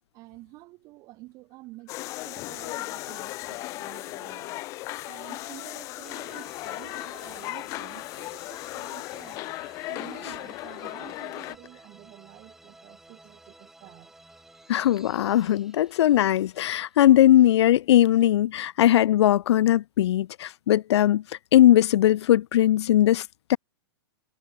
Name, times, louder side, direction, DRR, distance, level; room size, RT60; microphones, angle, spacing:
voice 1, 0.1-1.9 2.2-4.6 5.1-9.5 9.8-14.3, right 21 dB, 25° right, 5.8 m, -49 dB
sound 1, 1.9-11.6, left 19 dB, 20° left, 0.9 m, -36 dB
sound 2, 6.0-17.5, right 2 dB, 5° right, 5.7 m, -53 dB
voice 2, 14.7-21.2 21.5-23.6, left 12 dB, 80° left, 0.4 m, -19 dB
supercardioid pair, 175°, 14 cm